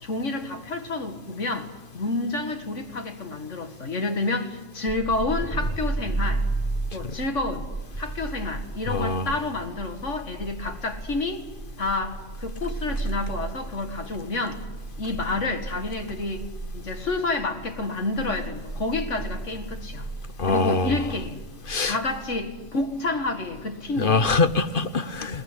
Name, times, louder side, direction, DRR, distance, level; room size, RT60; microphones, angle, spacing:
voice 1, 0.0-6.5 6.9-7.7 8.0-11.4 11.8-14.6 15.0-16.5 16.7-20.1 20.5-21.4 21.8-24.2, left 2 dB, 65° left, 6 dB, 2.4 m, -29 dB
sound 1, 4.9-24.8, right 3 dB, 5° right, 1.4 m, -34 dB
voice 2, 8.9-9.3 20.4-21.0 21.7-22.0 24.0-25.4, left 4 dB, 45° left, 11 dB, 1.1 m, -23 dB
22.0 x 19.5 x 9.8 m, 1.1 s
omnidirectional pair, 1.4 m